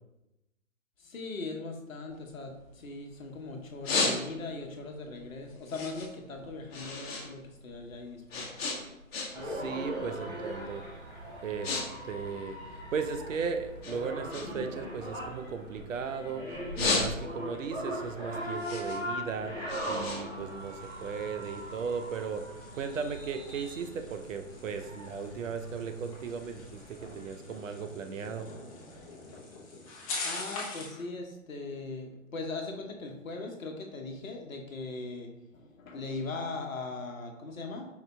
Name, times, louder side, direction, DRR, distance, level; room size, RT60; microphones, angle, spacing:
voice 1, 1.0-8.5 30.2-37.9, left 3 dB, 75° left, 3 dB, 1.0 m, -39 dB
sound 1, 2.1-3.2 3.6-4.7 5.1-7.3 7.6-9.6 9.9-10.2 10.8-11.0 11.3-11.8 12.1-13.3 13.8-16.1 16.5-17.6 18.0-21.1, left 3 dB, 50° left, 1.0 m, -34 dB
sound 2, 9.3-27.3, equal, 10° right, 0.6 m, -40 dB
voice 2, 9.4-10.8 11.4-11.8 12.0-22.4 22.7-28.5, right 6 dB, 70° right, 8 dB, 0.6 m, -36 dB
sound 3, 20.3-31.0, left 3 dB, 25° left, 0.9 m, -44 dB
4.9 x 3.8 x 2.3 m, 0.94 s
hypercardioid pair, 140°, 40 cm